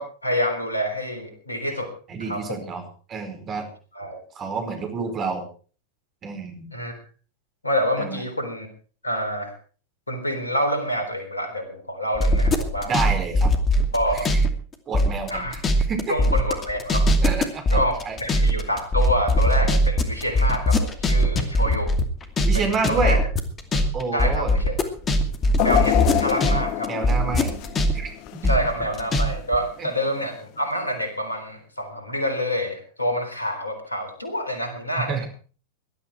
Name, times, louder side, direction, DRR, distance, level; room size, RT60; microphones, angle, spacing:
voice 1, 0.0-1.9 2.2-2.6 3.9-4.2 6.7-7.0 7.6-8.7 9.0-9.5 10.1-12.9 13.9-14.3 15.3-15.6 16.1-17.1 17.7-17.9 18.2-21.9 22.5-23.2 24.1-24.8 25.6-27.1 28.5-35.2, equal, 80° left, 8 dB, 3.7 m, -27 dB
voice 2, 2.1-3.7 4.3-5.4 6.2-6.7 8.0-8.2 12.9-13.5 14.1-14.4 14.9-15.6 15.9-16.1 17.2-17.6 18.0-18.2 22.4-23.2 23.9-24.6 26.9-27.5 27.9-28.1 28.4-28.5 29.8-29.9 35.0-35.3, right 4 dB, 25° right, 5 dB, 4.9 m, -28 dB
sound 1, 12.2-14.5 14.7-26.6 26.8-29.3 29.5-29.6, left 1 dB, 25° left, 2.5 m, -20 dB
sound 2, 25.6-28.7 29.2-29.3 30.3-30.4, left 14 dB, 45° left, 1.0 m, -26 dB
19.5 x 12.5 x 4.6 m, 0.39 s
figure-of-eight pair, 90°, 0 cm